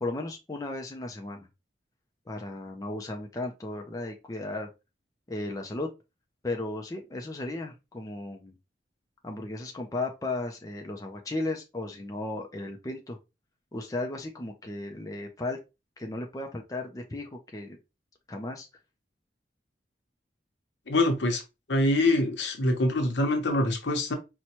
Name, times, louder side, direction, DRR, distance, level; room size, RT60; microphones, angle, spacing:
voice 1, 0.0-1.5 2.3-4.7 5.3-5.9 6.4-8.6 9.2-13.2 13.7-15.6 16.0-17.8 18.3-18.7, left 2 dB, 20° left, 0.4 m, -35 dB
voice 2, 20.9-21.4 21.7-24.1, left 1 dB, 75° left, 0.9 m, -25 dB
4.2 x 2.2 x 2.8 m
head